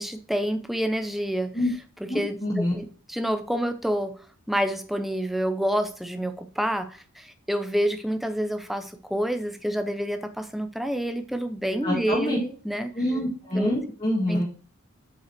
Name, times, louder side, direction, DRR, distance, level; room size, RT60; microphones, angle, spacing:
voice 1, 0.0-1.5 2.0-4.2 4.5-12.9 13.5-13.7 14.3-14.4, equal, ahead, 7 dB, 0.6 m, -28 dB
voice 2, 2.1-2.7 11.8-12.4 13.0-14.4, left 1 dB, 25° left, -5 dB, 2.0 m, -26 dB
8.2 x 5.4 x 4.5 m, 0.39 s
head